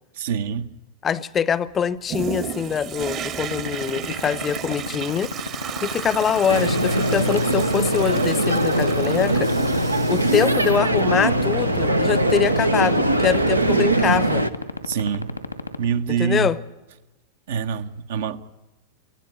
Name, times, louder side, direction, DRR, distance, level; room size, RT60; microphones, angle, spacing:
voice 1, 0.2-0.7 14.9-15.4 15.8-16.5 17.5-18.4, right 7 dB, 55° right, 10 dB, 0.8 m, -25 dB
voice 2, 1.0-5.3 5.8-9.5 10.1-14.4 16.1-16.6, left 7 dB, 25° left, 19 dB, 0.7 m, -24 dB
Toilet flush, 2.1-14.5 15.0-15.1, right 8 dB, 35° right, 1.1 m, -35 dB
sound 1, 3.4-15.8, left 3 dB, 90° left, 2.0 m, -28 dB
sound 2, 6.5-14.5, right 1 dB, 85° right, 0.8 m, -21 dB
19.5 x 14.5 x 9.5 m, 1.0 s
figure-of-eight pair, 90°, 0 cm